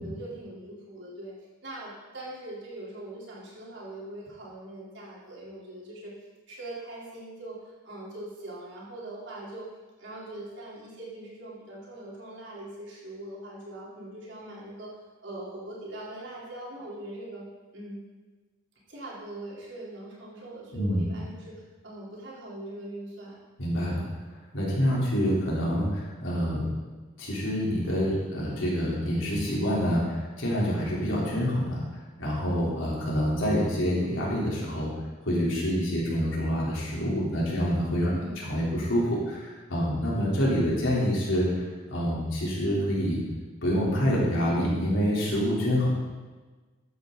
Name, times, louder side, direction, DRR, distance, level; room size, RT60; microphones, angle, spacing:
voice 1, 0.0-1.3 1.6-6.1 6.5-9.7 10.0-17.5 17.7-18.0 18.9-23.4 38.1-38.4, right 1 dB, 65° right, -6 dB, 3.7 m, -41 dB
voice 2, 23.6-24.1 24.5-26.7 27.2-31.8 32.2-34.9 35.2-41.5 41.9-43.2 43.6-45.9, equal, 80° left, -5 dB, 3.7 m, -27 dB
13.5 x 8.9 x 4.0 m, 1.3 s
head